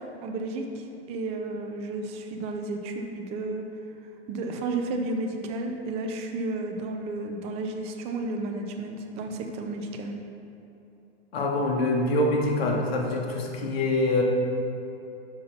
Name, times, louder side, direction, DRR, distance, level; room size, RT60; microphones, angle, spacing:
voice 1, 0.0-3.6 4.3-10.1, right 2 dB, 20° right, 4 dB, 0.4 m, -32 dB
voice 2, 11.3-14.2, left 2 dB, 65° left, 0 dB, 1.4 m, -25 dB
5.6 x 5.6 x 5.1 m, 2.9 s
hypercardioid pair, 140°, 33 cm